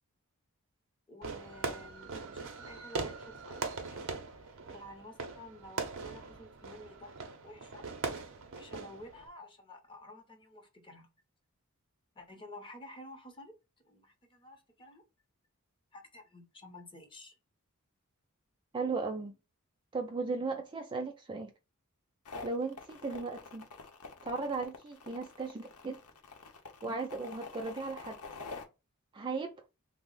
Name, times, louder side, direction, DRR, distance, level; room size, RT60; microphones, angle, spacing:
voice 1, 1.1-7.2 7.4-7.8 8.5-11.1 12.1-13.5 13.8-15.0 15.9-17.4, left 1 dB, 25° left, 0.7 m, -51 dB
Fireworks, 1.2-9.3, right 4 dB, 60° right, 0.6 m, -41 dB
voice 2, 18.7-19.3 19.9-21.5 22.4-23.6 24.2-26.0 26.8-28.2 29.1-29.7, right 4 dB, 20° right, 0.3 m, -36 dB
sound 1, 22.3-28.6, left 4 dB, 85° left, 0.7 m, -47 dB
3.3 x 2.0 x 3.7 m
head